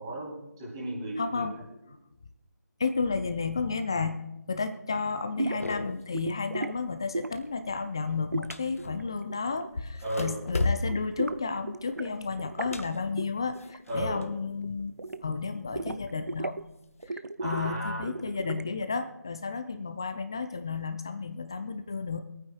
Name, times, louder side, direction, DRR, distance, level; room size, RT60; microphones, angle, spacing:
voice 1, 0.0-1.5 10.0-10.4 13.9-14.3 17.4-18.0, right 1 dB, 15° right, -5 dB, 3.1 m, -34 dB
voice 2, 1.2-1.5 2.8-4.2 4.5-14.9 15.2-16.6 17.1-22.2, left 4 dB, 15° left, 9 dB, 0.4 m, -32 dB
sound 1, 5.4-5.7 6.1-6.7 7.1-7.5 8.3-9.8 10.1-10.3 10.6-12.1 12.4-12.8 13.2-14.1 14.3-15.5 15.8-16.6 17.0-18.8, right 2 dB, 70° right, 0.6 m, -35 dB
sound 2, 5.6-6.2 6.6-7.0 7.3-9.2 9.7-14.4 14.7-15.7 16.3-17.1, left 2 dB, 50° left, 0.8 m, -35 dB
25.0 x 9.2 x 2.4 m, 0.91 s
figure-of-eight pair, 160°, 10 cm